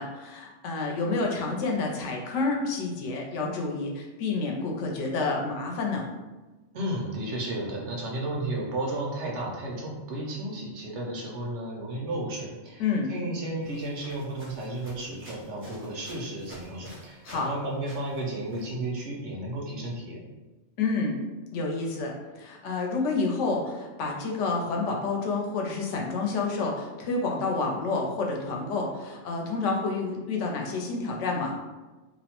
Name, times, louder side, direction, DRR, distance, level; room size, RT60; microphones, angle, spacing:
voice 1, 0.0-6.1 12.8-13.1 17.2-17.5 20.8-21.2 21.5-31.6, left 3 dB, 90° left, 0 dB, 0.9 m, -29 dB
voice 2, 6.7-12.8 13.1-20.2, right 1 dB, 80° right, -2 dB, 0.9 m, -33 dB
sound 1, 13.6-17.5 17.8-18.7, equal, 15° right, 0.5 m, -50 dB
2.7 x 2.0 x 2.8 m, 1.2 s
omnidirectional pair, 1.2 m